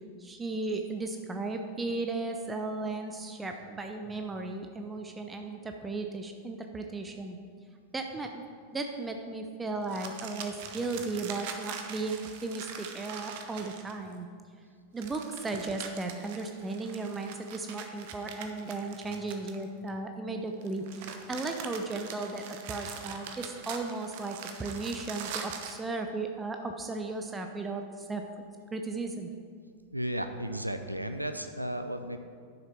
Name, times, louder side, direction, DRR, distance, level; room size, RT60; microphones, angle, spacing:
voice 1, 0.2-7.4 7.9-8.4 8.7-14.3 14.9-20.8 21.3-28.2 28.7-29.3, right 3 dB, 15° right, 4 dB, 0.7 m, -35 dB
sound 1, 9.8-14.1 15.0-19.9 20.6-25.8, right 7 dB, 50° right, 1.0 m, -43 dB
voice 2, 29.9-32.2, right 1 dB, 85° right, 8 dB, 0.5 m, -34 dB
11.0 x 6.7 x 4.5 m, 2.1 s
figure-of-eight pair, 90°, 0 cm